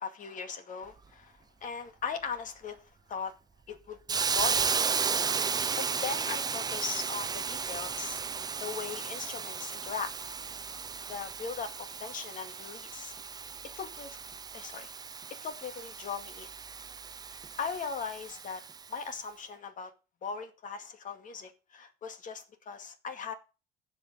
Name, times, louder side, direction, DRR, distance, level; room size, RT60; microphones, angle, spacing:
voice 1, 0.0-2.8 3.1-3.3 3.7-4.7 5.8-8.2 8.6-10.1 11.1-13.1 13.8-14.2 14.5-14.9 15.4-16.5 17.6-18.6 18.9-19.9 20.2-23.3, left 5 dB, 50° left, 2.1 m, -39 dB
Hiss, 4.1-18.9, right 5 dB, 25° right, 0.5 m, -34 dB
16.0 x 5.4 x 5.0 m
cardioid pair, 110°, 17 cm